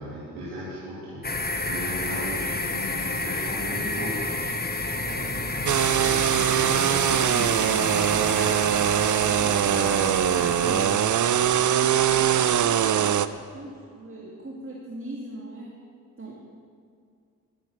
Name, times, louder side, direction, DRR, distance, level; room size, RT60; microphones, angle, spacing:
voice 1, 0.0-11.0, equal, 85° right, -8 dB, 2.8 m, -36 dB
sound 1, 1.2-13.1, left 2 dB, 25° left, 1.4 m, -32 dB
sound 2, 5.7-13.3, right 10 dB, 50° right, 0.6 m, -22 dB
voice 2, 13.5-15.7 16.2-16.3, right 1 dB, 35° right, -3 dB, 2.3 m, -40 dB
12.0 x 9.8 x 6.8 m, 2.3 s
supercardioid pair, 40°, 39 cm